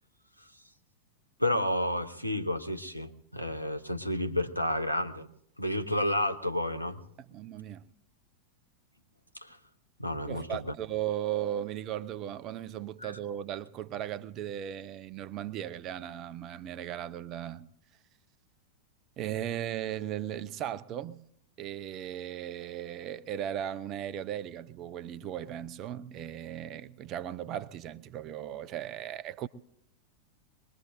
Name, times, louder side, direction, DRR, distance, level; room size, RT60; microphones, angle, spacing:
voice 1, 1.4-5.3 5.6-7.0 9.4-9.6 10.0-10.6 13.0-13.1, left 1 dB, 90° left, 0.8 m, -31 dB
voice 2, 7.3-7.9 10.3-17.6 19.2-21.2 21.6-29.5, right 11 dB, 35° right, 0.6 m, -37 dB
23.5 x 21.0 x 2.6 m
figure-of-eight pair, 90°, 0 cm